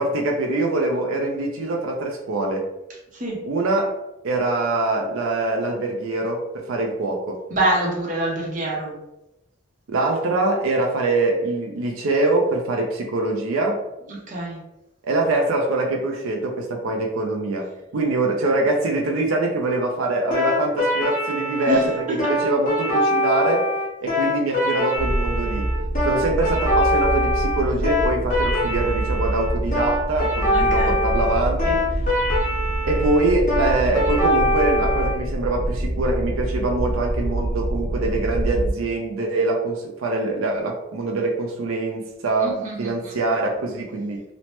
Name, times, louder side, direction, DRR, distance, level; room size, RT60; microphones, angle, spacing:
voice 1, 0.0-2.7 3.4-4.0 4.2-7.4 9.9-13.8 15.0-23.7 24.0-25.7 26.0-31.8 32.8-44.2, right 2 dB, 85° right, 1 dB, 0.5 m, -24 dB
voice 2, 7.5-8.9 14.1-14.6 21.7-22.3 30.5-31.0 42.4-43.1, right 1 dB, 40° right, -2 dB, 0.7 m, -26 dB
sound 1, 20.3-35.2, left 1 dB, 40° left, 1.0 m, -23 dB
sound 2, 25.0-38.7, right 1 dB, 65° left, 0.9 m, -26 dB
3.1 x 2.0 x 2.9 m, 0.90 s
head